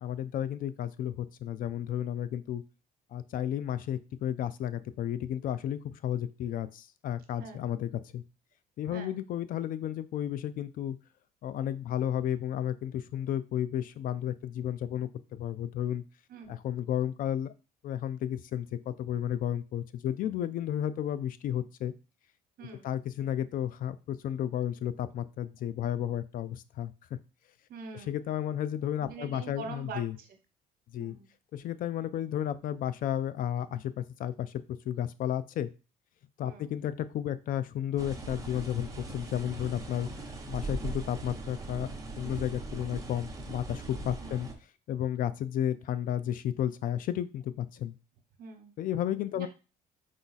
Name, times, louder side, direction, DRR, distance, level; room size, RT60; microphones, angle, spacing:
voice 1, 0.0-2.6 3.1-8.2 8.8-11.0 11.4-16.0 16.5-17.5 17.8-21.9 22.8-27.2 28.1-30.1 30.9-31.2 31.5-35.7 36.4-40.1 40.5-44.5 44.9-47.9 48.8-49.5, left 10 dB, 55° left, 14 dB, 0.4 m, -33 dB
voice 2, 8.9-9.2 16.3-16.5 22.6-22.9 27.7-28.2 29.0-30.4 31.0-31.3 36.4-36.7 44.2-44.4 48.4-48.7 49.3-49.5, right 5 dB, 60° right, 5 dB, 1.0 m, -44 dB
sound 1, 38.0-44.5, right 2 dB, 20° right, 0.8 m, -40 dB
4.8 x 2.3 x 4.0 m, 0.32 s
cardioid pair, 110°, 17 cm